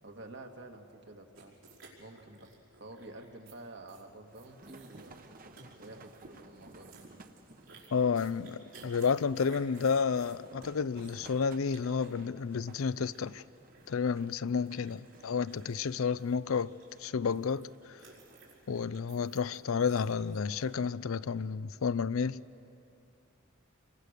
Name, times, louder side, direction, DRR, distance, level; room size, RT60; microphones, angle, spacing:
voice 1, 0.0-1.6 2.0-2.5 2.8-5.1 5.8-6.9 14.8-15.0, right 2 dB, 60° right, 1.8 m, -49 dB
sound 1, 1.3-3.5 3.9-4.0 4.3-5.3 5.5-6.3 6.6-17.6 18.0-20.4, right 4 dB, 80° right, 5.2 m, -58 dB
sound 2, 4.2-20.9, right 2 dB, 45° right, 1.1 m, -57 dB
voice 2, 7.9-13.4 13.9-16.7 17.0-17.7 18.7-22.4, left 5 dB, 85° left, 0.5 m, -31 dB
29.0 x 23.5 x 6.6 m
head